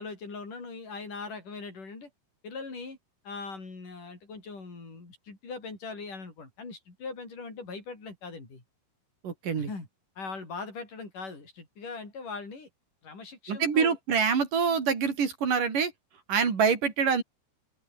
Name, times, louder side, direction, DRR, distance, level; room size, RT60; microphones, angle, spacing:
voice 1, 0.0-2.1 2.4-3.0 3.2-8.6 9.5-9.9 10.2-12.7 13.0-14.0, left 4 dB, 50° left, 9.2 m, -40 dB
voice 2, 9.2-9.7 13.5-15.9 16.3-17.2, right 6 dB, 55° right, 5.2 m, -25 dB
open air
omnidirectional pair, 4.6 m